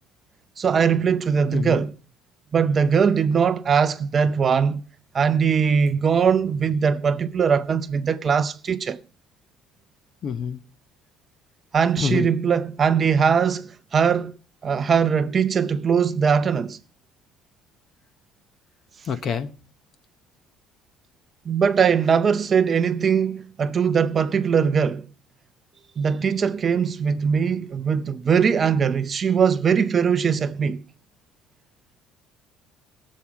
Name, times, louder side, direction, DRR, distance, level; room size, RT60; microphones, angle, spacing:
voice 1, 0.6-1.9 2.5-4.8 5.1-9.0 11.7-14.3 14.6-16.8 21.5-25.1 26.0-30.8, right 6 dB, 25° right, 0.6 m, -21 dB
voice 2, 1.5-1.8 10.2-10.6 12.0-12.3 19.0-19.5, left 7 dB, 40° left, 0.8 m, -27 dB
19.5 x 7.3 x 4.7 m
cardioid pair, 160°, 0 cm